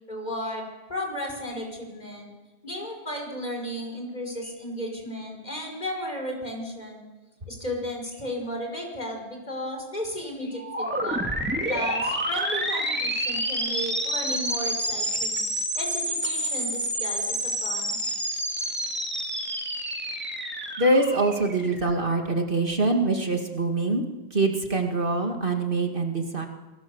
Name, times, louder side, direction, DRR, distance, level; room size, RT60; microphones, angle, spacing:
voice 1, 0.1-2.3 2.6-7.0 7.5-11.2 11.7-15.4 15.8-18.2, left 1 dB, 40° left, 2 dB, 5.7 m, -34 dB
sound 1, 10.5-22.2, right 1 dB, 10° right, 2.2 m, -29 dB
voice 2, 20.8-26.5, right 2 dB, 55° right, 3 dB, 2.3 m, -24 dB
28.5 x 18.5 x 7.1 m, 1.2 s
omnidirectional pair, 1.1 m